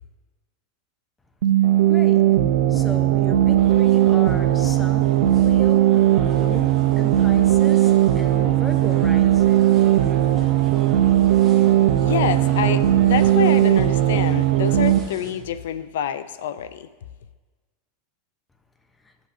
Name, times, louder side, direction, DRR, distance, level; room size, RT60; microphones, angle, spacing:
sound 1, 1.4-15.0, right 13 dB, 85° right, 0.6 m, -18 dB
sound 2, 1.6-13.5, right 9 dB, 50° right, 1.0 m, -37 dB
voice 1, 1.9-2.2 2.7-5.9 6.3-9.8, left 2 dB, 10° left, 7 dB, 0.7 m, -35 dB
sound 3, 3.6-15.3, right 1 dB, 15° right, 1.9 m, -40 dB
voice 2, 12.0-16.9, left 9 dB, 85° left, 14 dB, 0.4 m, -27 dB
15.0 x 7.8 x 2.6 m, 1.3 s
supercardioid pair, 140°, 0 cm